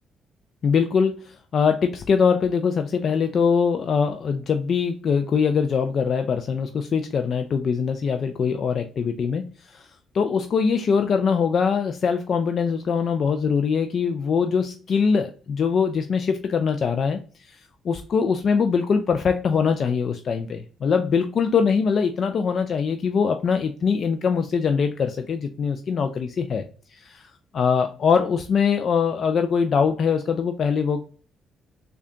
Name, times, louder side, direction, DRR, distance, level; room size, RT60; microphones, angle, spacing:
voice 1, 0.6-26.6 26.9-31.0, left 6 dB, 55° left, 7 dB, 0.4 m, -23 dB
3.7 x 2.3 x 3.5 m, 0.41 s
cardioid pair, 90°, 0 cm